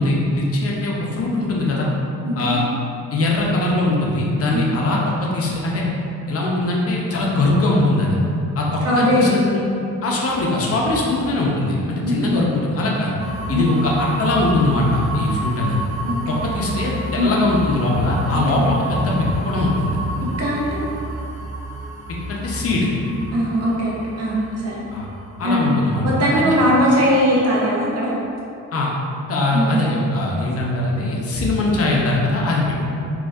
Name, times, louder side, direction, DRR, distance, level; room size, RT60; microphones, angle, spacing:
voice 1, 0.0-1.9 2.4-2.6 3.1-5.9 6.3-8.2 8.5-9.7 10.0-13.1 13.5-15.8 16.3-19.1 19.4-20.0 22.3-22.9 24.9-25.1 25.4-26.1 26.3-26.7 28.7-28.9 29.3-32.7, left 2 dB, 50° left, -3 dB, 0.7 m, -21 dB
voice 2, 2.2-2.6 4.5-4.7 8.8-9.3 12.0-12.4 13.5-13.6 16.0-16.4 17.2-17.3 18.5-18.6 20.2-20.8 23.3-24.8 25.4-25.8 26.0-28.1 29.5-29.8, equal, 55° right, -5 dB, 0.9 m, -20 dB
sound 1, 13.2-27.0, right 2 dB, 20° right, 1.0 m, -31 dB
3.8 x 2.7 x 2.5 m, 2.6 s
cardioid pair, 90°, 30 cm